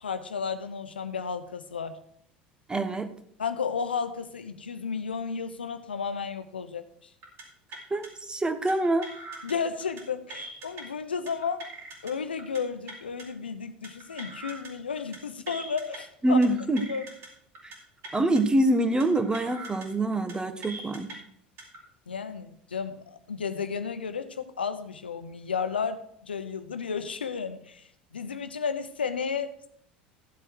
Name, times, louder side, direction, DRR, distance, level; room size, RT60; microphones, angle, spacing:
voice 1, 0.0-2.0 3.4-6.8 9.4-11.6 12.0-16.4 16.9-17.0 22.1-27.9 28.1-29.7, left 6 dB, 90° left, 10 dB, 0.9 m, -33 dB
voice 2, 2.7-3.1 7.9-9.1 16.2-16.8 17.6-17.7 18.1-21.1, right 1 dB, 15° right, 10 dB, 1.4 m, -25 dB
sound 1, 7.2-7.4 7.7-8.1 8.7-9.5 9.8-10.0 10.3-10.8 11.3-12.1 12.4-12.6 12.9-13.2 13.8-14.7 15.0-15.2 15.5-16.0 16.4-17.3 17.5-17.8 18.0-18.4 19.0-19.9 20.1-20.3 20.6-21.1 21.6-21.8, right 2 dB, 50° right, 4.3 m, -42 dB
14.5 x 7.7 x 4.8 m, 0.69 s
hypercardioid pair, 75°, 5 cm